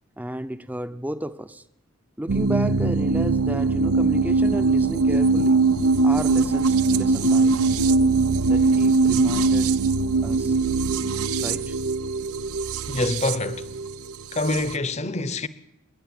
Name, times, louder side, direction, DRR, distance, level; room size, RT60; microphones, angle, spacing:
voice 1, 0.2-1.6 2.2-5.6 6.0-7.6 8.5-9.7 10.2-10.6 11.4-11.8, right 1 dB, 5° right, 0.7 m, -32 dB
sound 1, 2.3-14.7, right 3 dB, 90° right, 0.7 m, -21 dB
voice 2, 12.9-13.7 14.3-15.5, left 2 dB, 30° left, 0.9 m, -25 dB
28.0 x 11.0 x 9.4 m
head